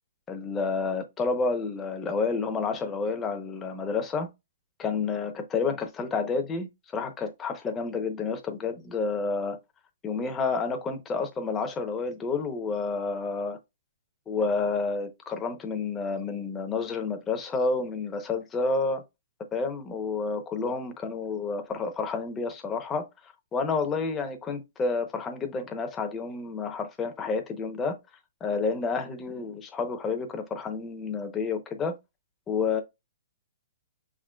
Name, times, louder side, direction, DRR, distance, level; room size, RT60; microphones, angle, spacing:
voice 1, 0.3-4.3 4.8-6.7 6.9-9.6 10.0-13.6 14.3-19.0 19.5-23.0 23.5-28.0 28.4-31.9 32.5-32.8, left 4 dB, 15° left, 0.7 m, -29 dB
5.7 x 3.7 x 2.2 m
hypercardioid pair, 160°, 0 cm